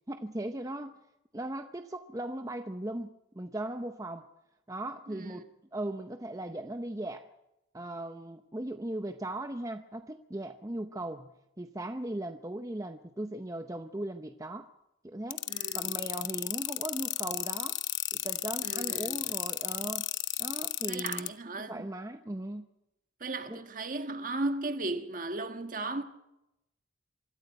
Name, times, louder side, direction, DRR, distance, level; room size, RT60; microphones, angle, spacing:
voice 1, 0.1-1.0 1.3-4.3 4.7-5.5 5.7-7.3 7.7-11.3 11.6-14.7 15.0-15.4 15.7-17.8 18.1-20.1 20.4-21.3 21.7-22.6 23.5-23.6, right 1 dB, 20° right, 0.7 m, -38 dB
voice 2, 5.1-5.4 15.5-15.8 18.6-19.3 20.8-21.9 23.2-26.0, right 2 dB, 45° right, 1.5 m, -36 dB
sound 1, 15.3-21.3, left 15 dB, 85° left, 0.8 m, -33 dB
25.0 x 13.5 x 8.0 m
head